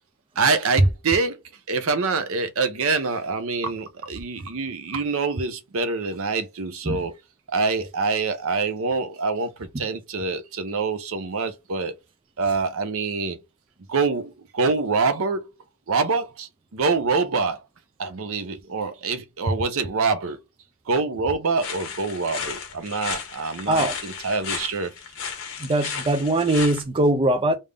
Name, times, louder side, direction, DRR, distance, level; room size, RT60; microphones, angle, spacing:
voice 1, 0.4-1.4 1.7-7.1 7.5-11.9 12.4-13.4 13.9-15.5 15.9-17.6 18.0-20.4 20.9-24.9 25.8-25.9, right 4 dB, 65° right, 0.7 m, -25 dB
sound 1, 21.6-26.8, left 6 dB, 60° left, 1.0 m, -34 dB
voice 2, 25.6-27.5, right 1 dB, 25° right, 0.4 m, -21 dB
3.5 x 2.6 x 3.3 m
head